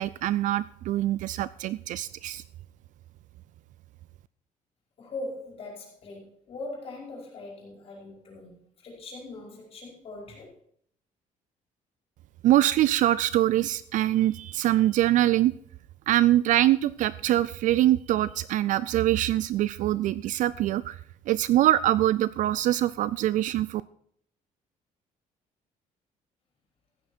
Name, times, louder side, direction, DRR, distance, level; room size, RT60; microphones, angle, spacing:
voice 1, 0.0-2.4 12.4-15.5 16.1-21.0 21.3-23.8, right 14 dB, 60° right, 17 dB, 0.4 m, -24 dB
voice 2, 5.0-8.5 8.8-10.5, left 2 dB, 45° left, -2 dB, 5.2 m, -40 dB
14.5 x 9.7 x 4.4 m, 0.65 s
cardioid pair, 165°, 14 cm